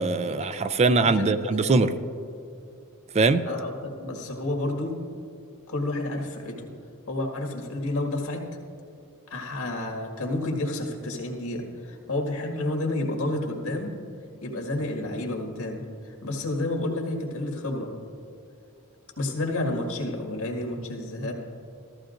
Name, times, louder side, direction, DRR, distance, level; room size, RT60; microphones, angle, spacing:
voice 1, 0.0-1.9 3.1-3.4, right 3 dB, 30° right, 11 dB, 0.4 m, -22 dB
voice 2, 1.0-2.0 3.5-5.0 5.7-6.7 7.1-8.4 9.3-14.0 14.4-17.9 19.2-21.3, left 2 dB, 80° left, 1 dB, 1.9 m, -30 dB
15.0 x 14.5 x 2.6 m, 2.5 s
head